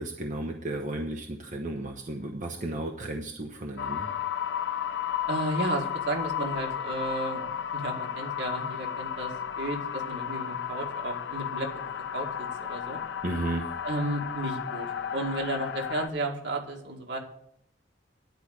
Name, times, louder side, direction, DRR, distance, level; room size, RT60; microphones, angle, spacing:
voice 1, 0.0-4.1 13.2-13.7, right 1 dB, 45° right, 3 dB, 0.8 m, -33 dB
sound 1, 3.8-16.1, left 9 dB, 90° left, 0.6 m, -33 dB
voice 2, 5.3-7.4 7.7-13.0 13.8-17.2, right 1 dB, 75° right, 0 dB, 2.2 m, -33 dB
10.5 x 4.9 x 8.1 m, 0.72 s
head